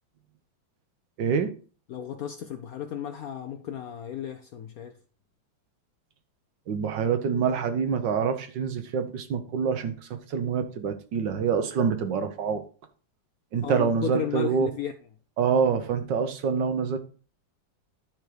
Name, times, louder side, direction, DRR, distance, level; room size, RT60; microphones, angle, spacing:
voice 1, 1.2-1.5 6.7-12.6 13.5-14.7 15.4-17.0, right 6 dB, 70° right, 1.6 m, -26 dB
voice 2, 1.9-5.0 13.6-14.9, left 9 dB, 70° left, 0.8 m, -34 dB
10.5 x 4.6 x 4.9 m
omnidirectional pair, 2.1 m